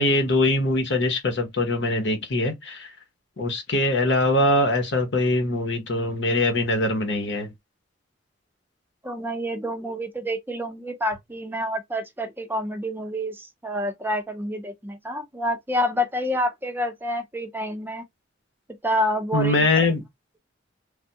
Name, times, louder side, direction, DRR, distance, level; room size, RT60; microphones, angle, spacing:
voice 1, 0.0-2.9 3.4-7.5 19.3-20.0, left 2 dB, 65° left, 1.0 m, -22 dB
voice 2, 9.0-18.0 18.8-19.7, equal, 10° right, 0.5 m, -28 dB
3.4 x 2.3 x 2.7 m
head